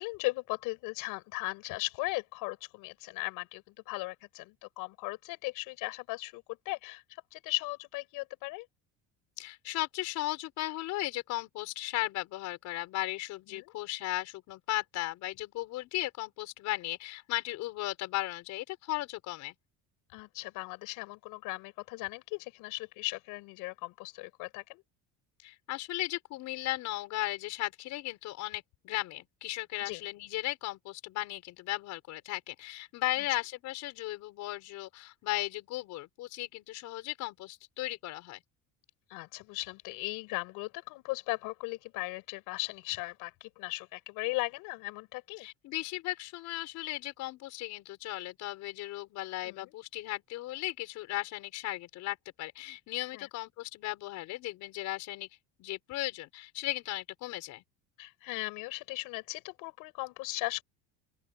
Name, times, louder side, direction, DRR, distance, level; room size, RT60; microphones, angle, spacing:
voice 1, 0.0-8.7 13.5-13.7 20.1-24.8 29.8-30.0 39.1-45.5 49.4-49.7 53.1-53.3 58.0-60.6, left 23 dB, 70° left, 7.7 m, -37 dB
voice 2, 9.4-19.5 25.4-38.4 45.4-55.3 55.6-57.6, left 17 dB, 55° left, 5.9 m, -36 dB
open air
cardioid pair, 175°, 34 cm